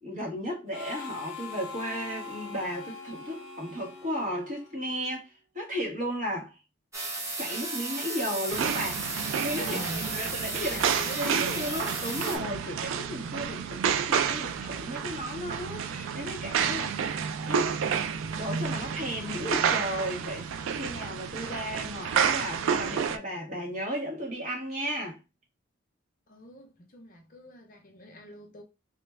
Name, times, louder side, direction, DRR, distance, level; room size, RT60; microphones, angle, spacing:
voice 1, 0.0-6.6 7.4-9.1 9.4-10.8 11.2-17.0 17.5-17.8 18.4-20.5 20.7-25.2, equal, 35° right, 1.4 m, -34 dB
Harmonica, 0.7-5.2, left 4 dB, 75° left, 0.9 m, -42 dB
sound 1, 6.9-12.4, right 3 dB, 15° right, 0.6 m, -34 dB
sound 2, 8.5-23.2, right 7 dB, 65° right, 0.3 m, -30 dB
voice 2, 9.6-11.9 26.3-28.6, equal, 40° left, 0.6 m, -44 dB
3.0 x 2.2 x 3.2 m
head